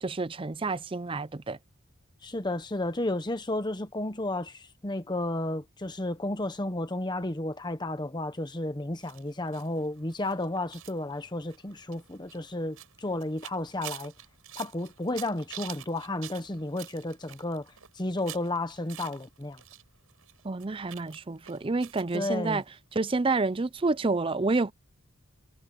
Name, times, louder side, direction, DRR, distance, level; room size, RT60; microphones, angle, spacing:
voice 1, 0.0-1.6 20.4-22.6 22.9-24.7, right 3 dB, 25° right, 0.5 m, -29 dB
voice 2, 2.2-14.1 14.6-17.7 17.9-19.6 22.1-22.6, left 1 dB, 20° left, 0.9 m, -32 dB
sound 1, 9.0-19.8 20.1-22.2 22.5-22.6 22.9-23.0, right 12 dB, 85° right, 5.5 m, -47 dB
head